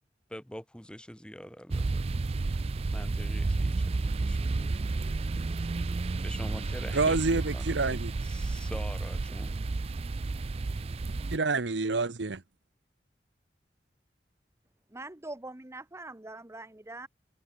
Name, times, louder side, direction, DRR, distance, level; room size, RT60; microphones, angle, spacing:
voice 1, 0.3-2.1 2.4-2.6 2.9-4.7 6.2-7.8 8.2-9.6, equal, 5° left, 2.3 m, -44 dB
sound 1, 1.7-11.4, right 3 dB, 35° right, 0.4 m, -31 dB
voice 2, 6.9-8.1 11.3-12.4, right 3 dB, 85° right, 1.0 m, -28 dB
voice 3, 14.9-17.1, right 2 dB, 15° right, 0.9 m, -43 dB
head